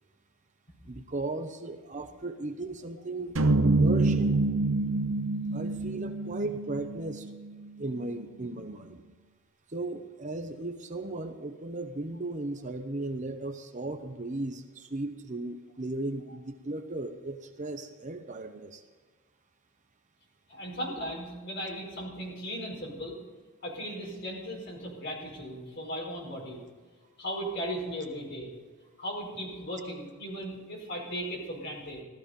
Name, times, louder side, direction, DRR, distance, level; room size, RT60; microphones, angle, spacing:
voice 1, 0.9-3.4 3.8-4.4 5.5-7.3 7.8-9.0 9.7-18.8, right 2 dB, 35° right, 7 dB, 0.8 m, -36 dB
sound 1, 3.4-7.7, right 2 dB, 60° right, 0.8 m, -26 dB
voice 2, 20.5-23.2 23.6-26.6 27.2-28.5 29.0-32.0, equal, 50° left, -1 dB, 5.2 m, -37 dB
16.5 x 13.5 x 5.2 m, 1.5 s
head